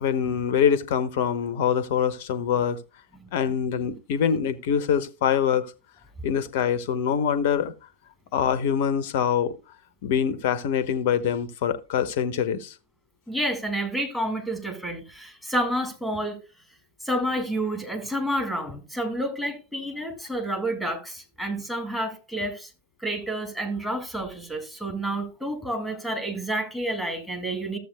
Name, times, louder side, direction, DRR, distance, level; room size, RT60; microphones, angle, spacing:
voice 1, 0.0-2.8 3.3-5.7 6.2-7.7 8.3-9.5 10.0-12.7, left 8 dB, 50° left, 0.9 m, -24 dB
voice 2, 13.3-16.4 17.0-22.7 23.0-27.8, right 1 dB, ahead, 2.3 m, -29 dB
14.5 x 7.7 x 2.2 m
figure-of-eight pair, 90°, 0 cm